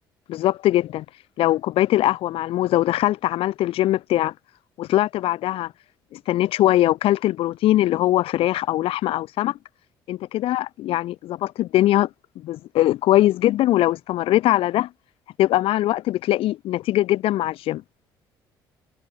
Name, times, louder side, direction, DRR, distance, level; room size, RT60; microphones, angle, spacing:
voice 1, 0.3-1.0 1.4-4.3 4.8-5.7 6.1-9.6 10.1-12.1 12.4-14.9 15.4-17.8, left 15 dB, 55° left, 4.1 m, -21 dB
figure-of-eight pair, 50°, 11 cm